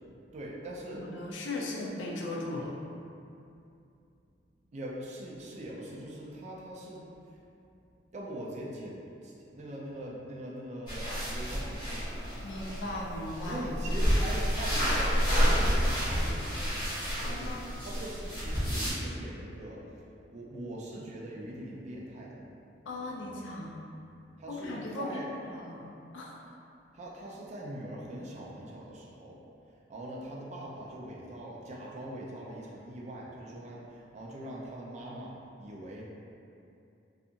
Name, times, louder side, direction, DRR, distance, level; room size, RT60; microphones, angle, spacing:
voice 1, 0.3-1.0 1.6-1.7 4.7-7.0 8.1-12.2 13.4-16.8 17.2-17.5 17.8-19.9 20.3-23.3 24.4-25.3 26.9-29.4 29.9-36.0, right 1 dB, 40° right, -4 dB, 0.4 m, -42 dB
voice 2, 0.9-2.7 12.4-13.6 17.2-17.7 22.9-23.8 24.5-25.2 25.5-26.4, left 2 dB, 90° left, -2 dB, 0.4 m, -38 dB
sound 1, 10.9-18.9, equal, 25° left, 0.8 m, -29 dB
2.8 x 2.4 x 2.5 m, 2.6 s
head